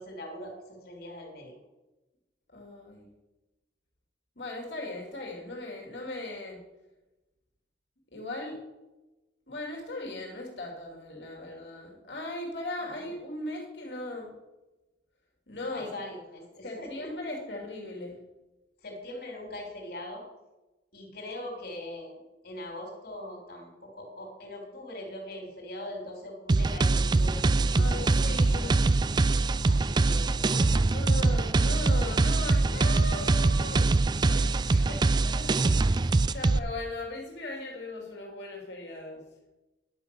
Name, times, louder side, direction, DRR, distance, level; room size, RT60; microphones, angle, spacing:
voice 1, 0.0-1.5 13.0-13.1 15.6-17.1 18.8-20.2 20.9-22.2 22.4-28.7 29.6-30.7 31.1-31.4 34.6-35.7, left 1 dB, 60° left, 0 dB, 3.2 m, -42 dB
voice 2, 2.5-3.1 4.4-6.6 8.1-8.6 9.5-14.3 15.5-16.0 16.6-18.2 27.7-28.7 30.9-34.9 35.3-39.2, left 2 dB, 75° left, -1 dB, 2.9 m, -38 dB
sound 1, 26.5-36.6, right 3 dB, 25° right, 0.3 m, -23 dB
11.0 x 5.9 x 6.8 m, 1.0 s
head